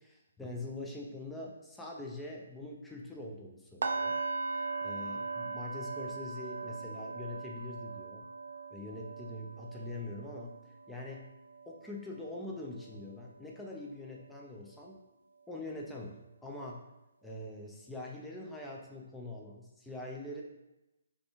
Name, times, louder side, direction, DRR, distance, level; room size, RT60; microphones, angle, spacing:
voice 1, 0.0-4.2 4.5-8.3 8.7-10.6 10.9-11.3 11.7-15.0 15.5-16.8 17.2-20.4, left 2 dB, 5° left, -2 dB, 0.5 m, -43 dB
sound 1, 3.8-13.7 14.1-14.4 14.8-14.9, right 4 dB, 60° right, 0.3 m, -40 dB
4.9 x 3.4 x 2.3 m, 0.96 s
figure-of-eight pair, 135°, 0 cm